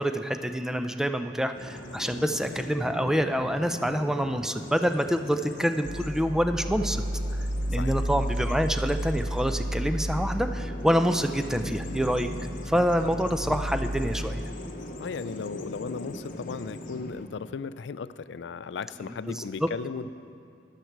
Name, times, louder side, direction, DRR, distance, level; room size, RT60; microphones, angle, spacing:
voice 1, 0.0-7.0 7.7-12.3 12.7-14.5 19.3-19.7, equal, 5° right, 8 dB, 0.4 m, -27 dB
Bird vocalization bird call bird song, 1.5-17.3, left 1 dB, 50° left, 0.9 m, -40 dB
sound 1, 5.8-14.4, equal, 55° right, 0.5 m, -32 dB
voice 2, 15.0-20.1, left 5 dB, 85° left, 15 dB, 0.4 m, -36 dB
14.5 x 11.0 x 4.6 m, 2.5 s
head